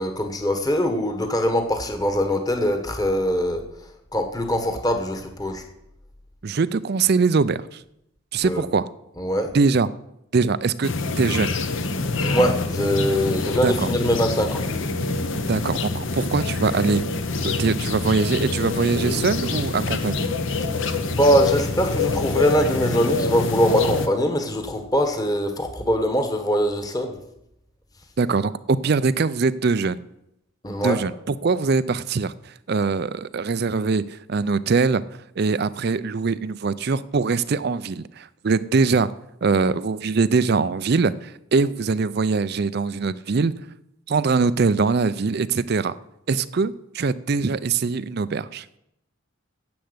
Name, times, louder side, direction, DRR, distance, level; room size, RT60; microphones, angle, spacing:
voice 1, 0.0-3.6 4.1-5.6 8.4-8.6 9.2-9.5 12.2-14.6 20.9-27.2 30.6-31.0, equal, 15° left, 6 dB, 1.2 m, -22 dB
voice 2, 6.4-7.8 8.3-8.9 9.5-9.9 10.3-11.5 13.6-13.9 15.5-17.0 17.4-20.3 28.2-30.0 30.8-35.0 35.4-39.1 39.4-43.6 44.1-45.9 46.3-48.7, right 4 dB, 50° right, 15 dB, 0.4 m, -22 dB
sound 1, 10.8-24.1, left 3 dB, 65° left, 1.0 m, -26 dB
10.5 x 7.9 x 8.0 m, 0.83 s
head